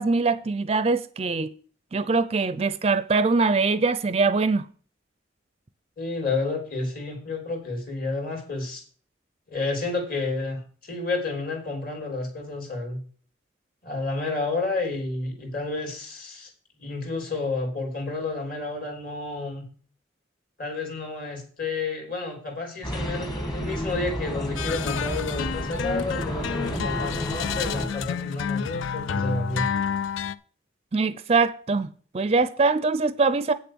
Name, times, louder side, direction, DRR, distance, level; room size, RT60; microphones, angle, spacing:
voice 1, 0.0-1.5 1.9-4.7 30.9-33.5, right 4 dB, 30° right, 0.4 m, -23 dB
voice 2, 6.0-8.8 9.5-13.0 13.8-16.5 16.8-19.6 20.6-29.7, left 3 dB, 50° left, 3.3 m, -30 dB
sound 1, 22.8-27.9, equal, 20° left, 1.5 m, -31 dB
sound 2, 24.6-30.3, left 7 dB, 90° left, 0.5 m, -30 dB
8.8 x 6.8 x 6.1 m
head